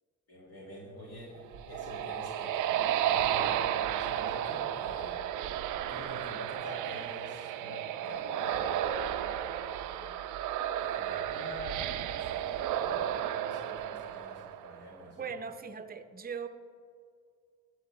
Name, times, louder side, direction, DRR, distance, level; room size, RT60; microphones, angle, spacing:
voice 1, 0.3-5.1 5.9-10.1 10.8-15.3, left 1 dB, 55° left, -4 dB, 1.8 m, -47 dB
sound 1, 1.4-14.9, right 10 dB, 90° right, 0.5 m, -33 dB
voice 2, 15.2-16.5, right 6 dB, 30° right, 9 dB, 0.7 m, -39 dB
14.0 x 8.0 x 3.1 m, 2.2 s
cardioid pair, 90°, 30 cm